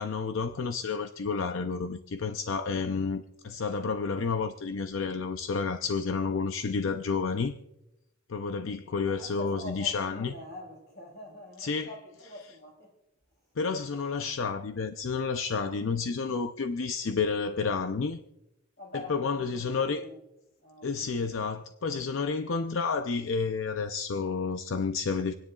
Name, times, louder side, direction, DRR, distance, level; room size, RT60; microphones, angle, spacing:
voice 1, 0.0-7.6 8.3-10.3 11.6-11.9 13.6-18.2 19.1-20.0 20.8-25.3, left 5 dB, 85° left, 0.6 m, -30 dB
voice 2, 9.0-12.9 18.8-20.2 20.6-21.0, left 1 dB, 60° left, 4.8 m, -45 dB
27.5 x 10.0 x 2.4 m
head